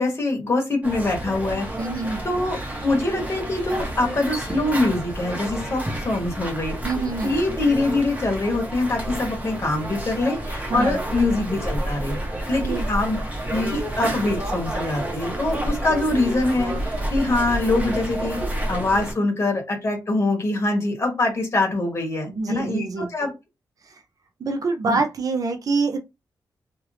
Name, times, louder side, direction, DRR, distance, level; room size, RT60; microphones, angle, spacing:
voice 1, 0.0-1.7 2.2-6.7 7.2-12.2 12.5-13.2 13.5-18.4 18.7-23.3 24.9-25.0, left 2 dB, 35° left, 1 dB, 1.0 m, -24 dB
sound 1, 0.8-19.1, right 1 dB, 20° right, 0.9 m, -30 dB
voice 2, 1.8-2.3 6.8-7.3 10.7-11.0 12.6-12.8 22.3-23.1 23.9-24.0 24.4-26.0, right 3 dB, 50° right, 6 dB, 0.5 m, -25 dB
2.9 x 2.4 x 3.2 m, 0.24 s
wide cardioid pair, 160°, 8 cm